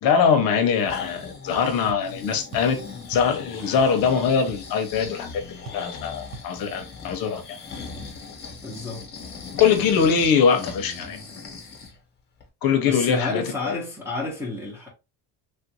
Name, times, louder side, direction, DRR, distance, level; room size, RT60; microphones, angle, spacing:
voice 1, 0.0-2.8 3.1-5.4 5.7-7.4 9.5-11.2 12.6-13.7, left 6 dB, 60° left, 0.7 m, -22 dB
Breathing, 0.5-12.0 12.4-12.5, left 5 dB, 25° left, 0.9 m, -39 dB
sound 1, 1.9-2.1 2.5-2.8 3.1-3.4 3.8-4.0 4.3-4.8 5.0-5.2 5.7-5.9 6.3-6.5, right 2 dB, 55° right, 0.7 m, -40 dB
voice 2, 8.6-9.1 12.8-14.9, left 3 dB, 5° right, 0.7 m, -30 dB
3.3 x 2.5 x 2.7 m
cardioid pair, 175°, 41 cm